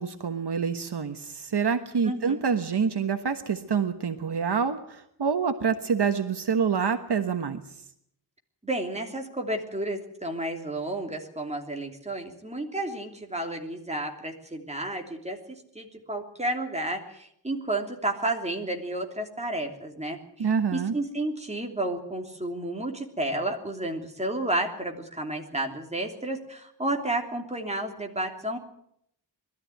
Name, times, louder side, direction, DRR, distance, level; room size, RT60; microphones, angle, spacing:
voice 1, 0.0-7.6 20.4-20.9, right 6 dB, 70° right, 8 dB, 1.3 m, -27 dB
voice 2, 2.0-2.4 8.6-28.6, right 1 dB, 15° right, 3 dB, 3.1 m, -31 dB
21.5 x 13.5 x 9.3 m, 0.74 s
wide cardioid pair, 115°, 42 cm